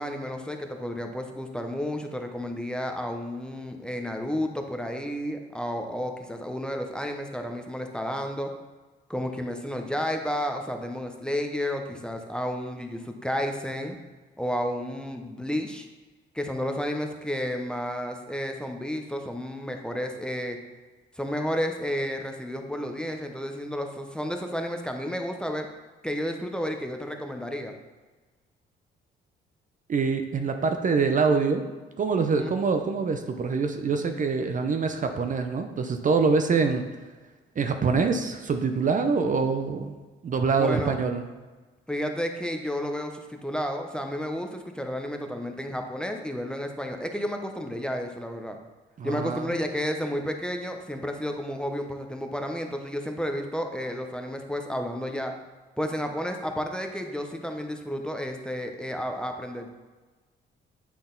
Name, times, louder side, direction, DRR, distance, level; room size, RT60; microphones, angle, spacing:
voice 1, 0.0-8.5 9.1-14.0 14.4-15.9 16.3-20.6 21.2-25.7 26.0-27.7 32.4-32.6 40.6-41.0 41.9-48.6 49.0-55.3 55.8-59.7, equal, 5° left, 4 dB, 0.7 m, -31 dB
voice 2, 29.9-31.6 32.0-36.9 37.6-40.0 40.2-41.3 49.0-49.5, right 4 dB, 40° right, 6 dB, 0.6 m, -25 dB
8.5 x 3.9 x 3.9 m, 1.3 s
cardioid pair, 90°, 20 cm